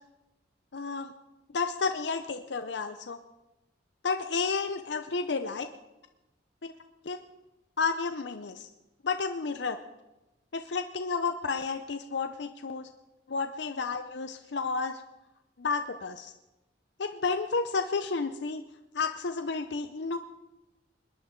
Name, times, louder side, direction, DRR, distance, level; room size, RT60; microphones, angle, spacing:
voice 1, 0.7-1.1 1.5-3.2 4.0-5.7 6.6-6.7 7.0-7.2 7.8-8.7 9.0-9.8 10.5-12.9 13.3-15.0 15.6-16.3 17.0-18.6 18.9-20.2, left 4 dB, 65° left, 8 dB, 0.6 m, -31 dB
21.5 x 10.5 x 3.8 m, 0.99 s
head